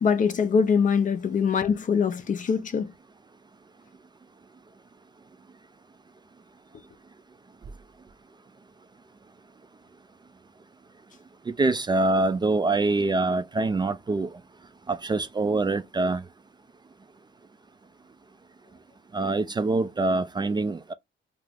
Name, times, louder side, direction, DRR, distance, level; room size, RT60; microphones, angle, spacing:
voice 1, 0.0-2.9, left 6 dB, 40° left, 0.5 m, -23 dB
voice 2, 11.6-14.3 14.9-16.2 19.1-20.9, right 3 dB, 20° right, 0.3 m, -24 dB
2.5 x 2.4 x 3.3 m
cardioid pair, 90°, 20 cm